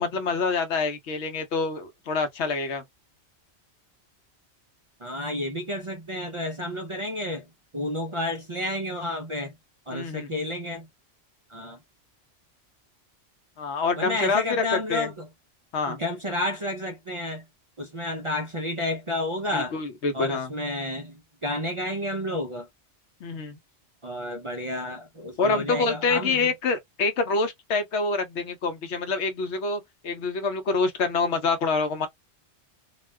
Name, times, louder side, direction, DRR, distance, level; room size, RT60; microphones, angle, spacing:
voice 1, 0.0-2.8 9.9-10.3 13.6-15.1 15.7-16.0 19.5-20.5 23.2-23.6 25.4-32.1, left 4 dB, 75° left, 1.0 m, -26 dB
voice 2, 5.0-7.4 7.7-9.5 9.9-10.9 11.5-11.8 14.0-15.3 15.9-17.4 17.8-19.8 20.1-22.7 24.0-26.5, left 1 dB, 40° right, 0.4 m, -31 dB
2.3 x 2.3 x 3.3 m
omnidirectional pair, 1.2 m